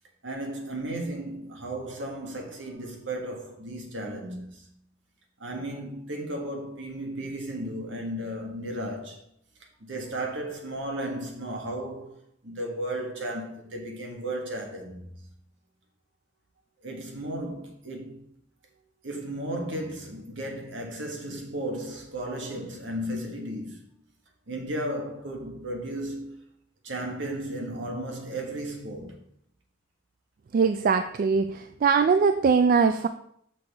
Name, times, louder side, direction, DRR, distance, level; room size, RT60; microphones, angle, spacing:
voice 1, 0.2-4.7 5.4-9.2 9.8-12.2 12.4-15.2 16.8-18.2 19.0-23.8 24.5-26.4 26.8-29.2, right 1 dB, 70° right, 1.5 m, -34 dB
voice 2, 30.5-33.1, right 5 dB, 45° right, 0.3 m, -21 dB
6.6 x 6.0 x 3.4 m
head